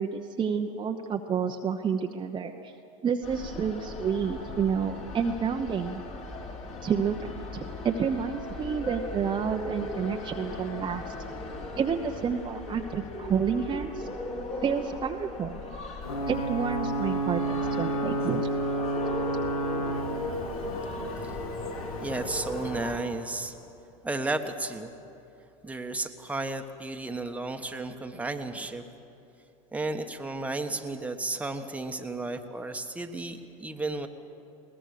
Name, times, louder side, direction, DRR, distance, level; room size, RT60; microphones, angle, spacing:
voice 1, 0.0-2.7 3.0-6.0 6.8-11.1 11.8-14.1 14.6-15.5 16.3-18.5, right 6 dB, 25° right, 3 dB, 0.9 m, -29 dB
sound 1, 3.2-23.0, left 2 dB, 40° left, 3.6 m, -38 dB
Ocean / Boat Water vehicle / Alarm, 16.0-23.6, right 2 dB, 85° left, 2.1 m, -32 dB
voice 2, 22.0-23.5 24.0-25.0 25.6-28.8 29.7-34.1, right 2 dB, 10° right, 5 dB, 1.3 m, -33 dB
21.5 x 18.5 x 6.7 m, 2.9 s
hypercardioid pair, 95°, 18 cm